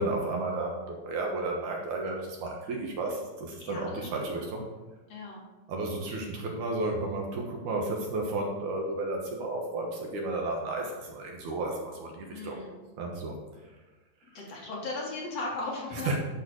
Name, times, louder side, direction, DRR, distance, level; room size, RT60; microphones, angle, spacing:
voice 1, 0.0-4.6 5.7-12.6 13.0-13.4 16.1-16.2, right 2 dB, 70° right, 0 dB, 2.6 m, -32 dB
voice 2, 3.6-4.5 5.1-5.4 12.3-12.8 14.3-16.2, left 2 dB, 55° left, -3 dB, 2.8 m, -37 dB
11.0 x 6.6 x 4.8 m, 1.1 s
omnidirectional pair, 3.9 m